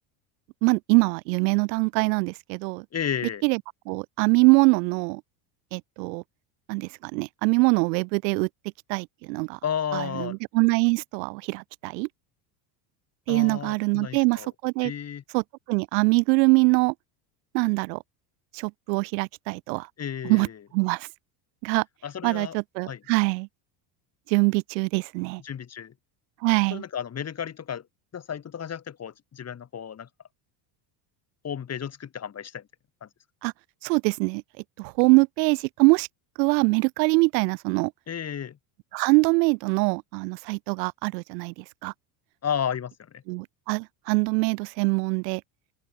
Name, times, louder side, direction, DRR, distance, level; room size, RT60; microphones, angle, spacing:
voice 1, 0.6-2.8 3.4-3.6 3.8-5.2 5.7-6.2 6.7-8.5 8.9-9.6 9.9-12.1 13.3-14.9 15.3-15.4 15.7-16.9 17.5-18.0 18.5-19.9 20.2-20.5 20.7-21.1 21.6-21.8 22.2-23.5 24.3-25.4 26.4-26.8 33.4-33.5 33.8-34.4 34.8-36.1 36.4-37.9 38.9-41.9 43.3-45.4, right 28 dB, 85° right, 1.6 m, -23 dB
voice 2, 2.9-3.4 9.6-10.4 13.3-14.5 14.8-15.2 20.0-20.6 22.0-22.5 22.8-23.0 25.4-25.9 26.7-27.9 28.1-30.1 31.4-32.7 33.0-33.1 38.1-38.6 42.4-43.2, left 8 dB, 30° left, 6.7 m, -32 dB
open air
supercardioid pair, 130°, 49 cm